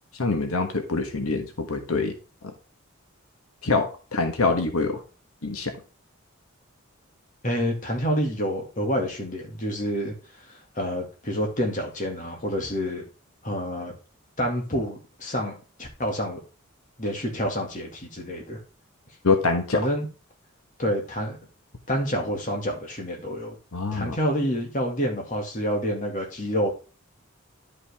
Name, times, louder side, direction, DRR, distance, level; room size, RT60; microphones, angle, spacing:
voice 1, 0.1-2.1 3.6-5.0 5.4-5.7 19.2-19.8 23.7-24.2, left 3 dB, 90° left, 5 dB, 1.3 m, -25 dB
voice 2, 7.4-13.0 13.4-13.9 14.4-16.4 17.0-18.6 19.7-20.1 20.8-21.4 21.9-23.5 23.9-26.7, equal, 35° left, 1 dB, 2.1 m, -28 dB
10.5 x 5.2 x 3.5 m, 0.35 s
head